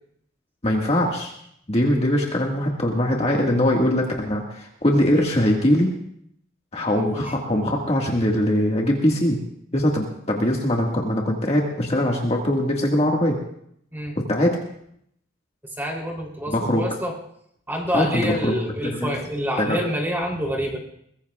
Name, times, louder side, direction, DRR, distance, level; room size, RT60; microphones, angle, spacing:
voice 1, 0.6-1.3 1.7-5.9 6.7-9.4 9.7-13.4 14.1-14.6 16.5-16.9 17.9-18.6 18.8-19.1 19.6-19.8, left 1 dB, 30° left, -1 dB, 1.8 m, -21 dB
voice 2, 7.0-7.3 13.9-14.2 15.8-17.1 17.7-20.8, equal, 10° right, -2 dB, 3.3 m, -27 dB
22.5 x 21.0 x 2.4 m, 0.72 s
head